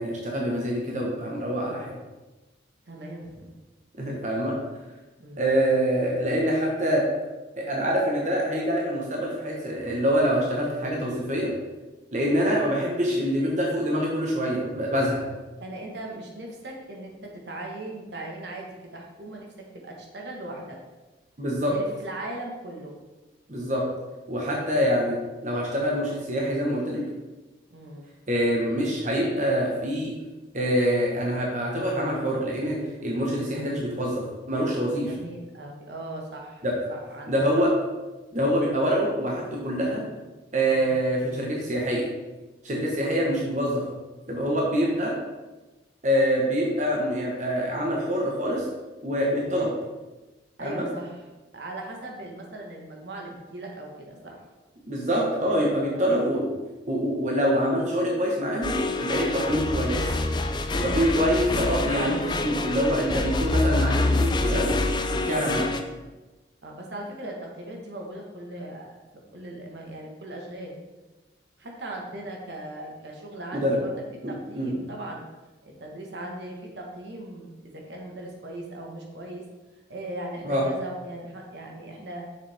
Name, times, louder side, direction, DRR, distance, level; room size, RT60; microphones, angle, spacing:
voice 1, 0.0-2.0 4.0-4.6 5.4-7.0 7.6-11.5 12.1-15.2 21.4-21.7 23.5-23.8 24.3-25.2 25.4-27.0 28.3-30.1 30.5-32.8 33.0-35.1 36.6-36.7 37.3-37.7 38.3-40.0 40.5-42.1 42.6-43.8 44.3-45.1 46.0-48.6 49.0-49.7 50.6-50.9 54.9-56.5 56.9-58.7 59.0-60.2 60.8-64.7 65.1-65.6 73.5-73.8 74.2-74.7 80.4-80.6, equal, 40° right, -2 dB, 1.2 m, -25 dB
voice 2, 2.8-3.5 5.2-5.5 15.6-19.5 19.8-20.8 21.7-22.9 24.7-24.9 27.7-28.1 33.5-34.0 35.0-37.6 39.8-40.1 40.7-40.9 43.1-43.3 44.9-45.1 49.4-49.7 50.6-51.2 51.5-54.5 55.9-56.2 59.3-59.7 60.7-61.3 65.2-65.6 66.6-70.8 71.6-73.9 74.3-75.2 75.6-79.4 79.9-82.3, right 1 dB, 65° right, 0 dB, 1.4 m, -39 dB
sound 1, 58.6-65.8, left 2 dB, 25° left, 0.4 m, -26 dB
7.1 x 6.6 x 3.5 m, 1.2 s
head